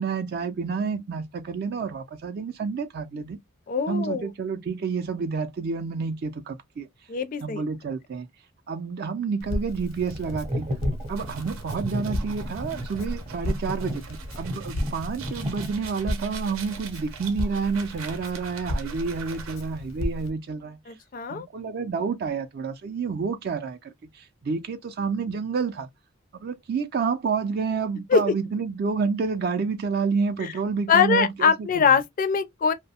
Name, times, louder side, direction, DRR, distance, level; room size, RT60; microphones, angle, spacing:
voice 1, 0.0-3.4 3.9-6.9 7.4-8.3 8.7-10.7 11.1-20.8 21.3-25.9 26.3-31.9, right 5 dB, 50° right, 0.3 m, -29 dB
voice 2, 3.7-4.3 7.1-7.6 20.9-21.5 28.1-28.3 30.4-30.5 30.9-32.7, left 6 dB, 40° left, 0.4 m, -22 dB
Crackle, 9.4-20.3, equal, 80° left, 0.7 m, -34 dB
sound 1, 10.0-16.1, equal, 30° right, 0.7 m, -33 dB
sound 2, 11.1-19.8, right 6 dB, 85° right, 0.7 m, -43 dB
2.6 x 2.1 x 2.7 m
head